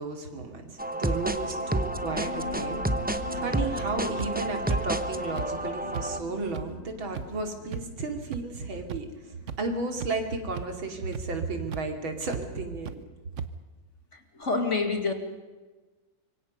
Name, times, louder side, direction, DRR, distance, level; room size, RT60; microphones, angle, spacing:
voice 1, 0.0-2.9 3.3-13.0, right 3 dB, 85° right, 4 dB, 3.6 m, -33 dB
sound 1, 0.8-6.2, right 1 dB, 10° right, 0.4 m, -30 dB
sound 2, 1.4-12.6, left 5 dB, 70° left, 2.2 m, -44 dB
sound 3, 4.2-4.3 4.7-4.8 5.4-5.5 5.9-6.1 6.5-6.6 7.1-7.3 7.7-7.8 8.3-8.4 8.9-9.0 9.5-9.6 10.0-10.2 10.5-10.7 11.1-11.2 11.7-11.8 12.3-12.4 12.9-13.0 13.4-13.5, right 7 dB, 50° right, 1.0 m, -34 dB
voice 2, 14.1-15.1, left 3 dB, 35° left, 6 dB, 2.4 m, -28 dB
26.0 x 24.0 x 5.4 m, 1.3 s
omnidirectional pair, 2.1 m